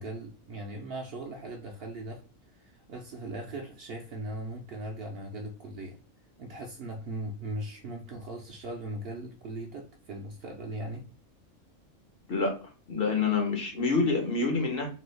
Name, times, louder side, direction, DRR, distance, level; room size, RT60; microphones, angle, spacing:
voice 1, 0.0-2.2 2.5-6.0 6.4-11.0, right 1 dB, 65° right, 2 dB, 0.6 m, -39 dB
voice 2, 12.9-14.9, left 4 dB, 55° left, 2 dB, 0.8 m, -27 dB
2.9 x 2.3 x 3.2 m, 0.36 s
omnidirectional pair, 1.4 m